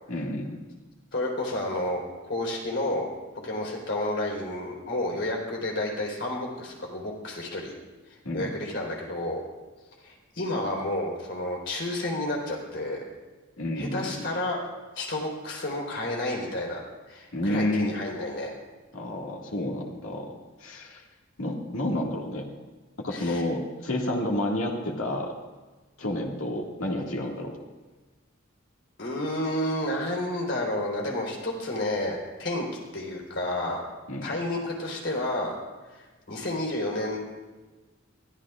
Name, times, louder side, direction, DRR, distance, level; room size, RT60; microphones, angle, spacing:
voice 1, 0.1-0.6 8.2-8.5 13.6-14.3 17.3-17.9 18.9-20.3 20.6-21.0 21.4-22.5 23.0-25.3 26.0-27.6 34.1-34.3, left 1 dB, 85° left, -1 dB, 2.0 m, -30 dB
voice 2, 1.1-3.1 3.4-7.7 8.3-9.4 10.0-13.0 13.8-14.6 15.0-16.8 17.1-18.5 23.1-23.4 29.0-32.7 32.9-33.8 34.2-35.6 35.9-36.0 36.3-37.2, left 1 dB, 60° left, -1 dB, 3.9 m, -30 dB
22.5 x 14.5 x 2.5 m, 1.3 s
head